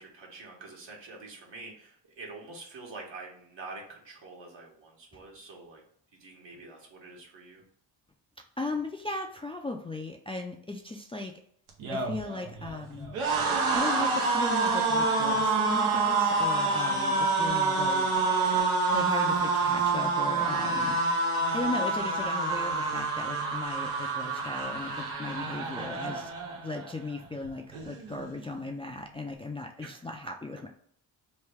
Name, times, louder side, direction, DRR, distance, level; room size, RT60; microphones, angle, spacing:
voice 1, 0.0-5.8 6.2-7.6 29.8-30.0, right 3 dB, 65° right, -1 dB, 1.4 m, -46 dB
voice 2, 8.6-11.3 11.9-13.1 13.7-18.1 18.9-21.0 21.5-26.3 26.6-30.7, left 2 dB, 15° left, 1 dB, 0.3 m, -37 dB
sound 1, 11.7-26.9 27.2-27.5 27.7-28.5, right 3 dB, 90° right, 0.8 m, -27 dB
3.2 x 2.2 x 3.4 m, 0.63 s
supercardioid pair, 55°, 47 cm